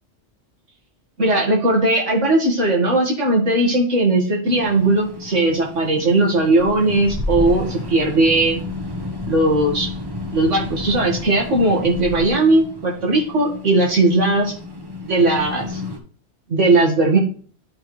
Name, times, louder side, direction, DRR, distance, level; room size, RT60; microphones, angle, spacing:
voice 1, 1.2-8.6 9.3-9.9 10.3-14.5 15.1-15.8 16.5-17.2, right 2 dB, 85° right, -1 dB, 2.2 m, -18 dB
sound 1, 4.5-16.0, left 2 dB, 25° right, 0.8 m, -31 dB
10.0 x 4.4 x 3.2 m, 0.42 s
omnidirectional pair, 1.2 m